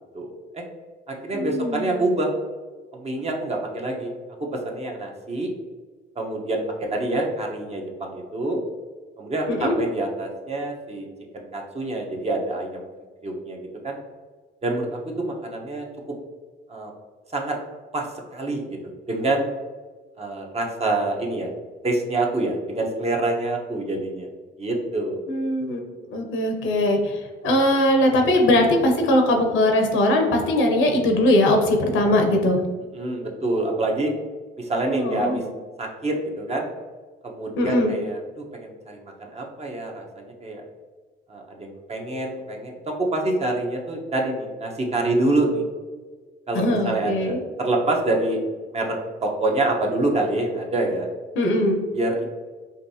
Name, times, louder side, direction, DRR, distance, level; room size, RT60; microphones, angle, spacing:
voice 1, 0.1-0.6 1.1-2.3 2.9-4.1 4.4-5.5 6.2-8.6 9.2-11.1 11.3-12.8 13.2-13.6 13.8-14.0 14.6-15.9 16.7-16.9 17.3-17.6 17.9-18.1 18.3-19.5 20.2-21.5 21.8-24.3 24.6-25.2 32.9-34.1 34.6-35.4 35.8-36.7 37.2-40.6 41.3-45.6 46.5-48.4 48.7-51.1 51.9-52.3, right 2 dB, 30° right, 0 dB, 0.9 m, -26 dB
voice 2, 1.3-1.9 9.5-9.8 25.3-25.8 26.1-32.6 34.9-35.4 37.6-37.9 46.5-47.4 51.3-51.8, left 1 dB, 90° left, 3 dB, 0.8 m, -20 dB
5.1 x 2.7 x 2.7 m, 1.4 s
cardioid pair, 90°, 20 cm